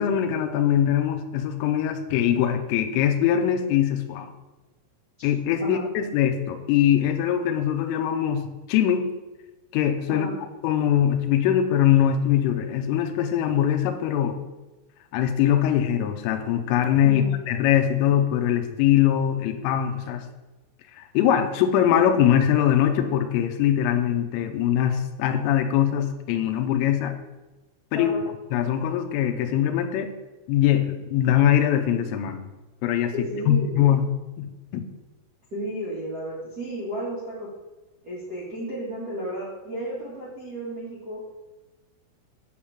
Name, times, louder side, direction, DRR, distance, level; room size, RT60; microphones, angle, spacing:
voice 1, 0.0-4.3 5.2-9.1 9.7-10.3 10.6-14.4 15.1-17.2 17.5-20.2 20.9-27.2 27.9-28.1 28.5-30.1 30.5-32.4 32.8-33.1 33.5-34.1 34.4-34.9, left 10 dB, 80° left, 6 dB, 3.3 m, -22 dB
voice 2, 17.0-17.3 27.9-28.3 33.1-33.8 35.5-37.5 38.0-41.2, right 1 dB, 55° right, -8 dB, 1.1 m, -33 dB
9.5 x 5.0 x 7.4 m, 1.1 s
omnidirectional pair, 5.9 m